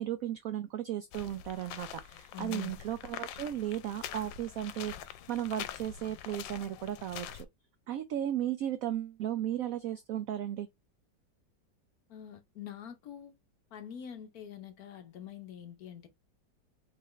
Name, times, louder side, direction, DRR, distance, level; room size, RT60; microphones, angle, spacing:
voice 1, 0.0-7.5 7.9-10.7, right 11 dB, 85° right, 0.7 m, -35 dB
sound 1, 1.1-7.4, left 11 dB, 90° left, 1.3 m, -44 dB
voice 2, 2.3-2.7 12.1-13.3 13.7-16.1, left 9 dB, 60° left, 1.1 m, -45 dB
4.0 x 3.9 x 3.1 m
omnidirectional pair, 2.0 m